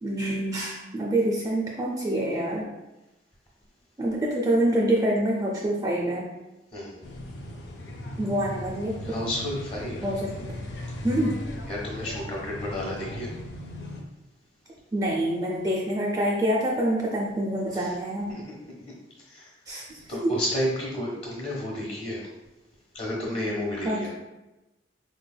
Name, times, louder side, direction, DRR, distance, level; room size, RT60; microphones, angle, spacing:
voice 1, 0.0-2.7 4.0-6.3 8.2-9.3 10.0-10.3 11.0-11.4 14.9-18.3 19.7-19.8 20.2-20.3 23.8-24.1, right 1 dB, 20° right, -3 dB, 0.4 m, -26 dB
voice 2, 6.7-7.2 9.0-10.1 11.7-13.3 17.7-18.0 18.3-18.4 19.3-19.5 20.1-22.3 22.9-24.1, left 1 dB, 30° left, -4 dB, 1.1 m, -31 dB
sound 1, 7.0-14.0, left 1 dB, 75° left, 0.5 m, -37 dB
4.1 x 3.3 x 2.2 m, 1.0 s
head